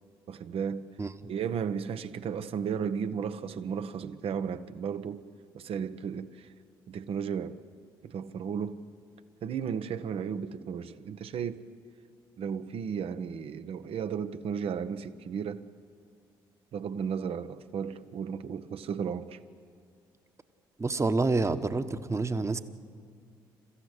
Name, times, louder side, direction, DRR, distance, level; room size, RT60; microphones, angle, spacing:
voice 1, 0.3-0.9 1.3-5.2 5.5-6.5 6.9-7.6 8.0-8.8 9.4-11.6 12.4-15.7 16.7-19.4, right 7 dB, 55° right, 1.0 m, -34 dB
voice 2, 20.8-22.6, right 3 dB, 25° right, 1.3 m, -28 dB
28.5 x 15.0 x 8.3 m
hypercardioid pair, 50°, 11 cm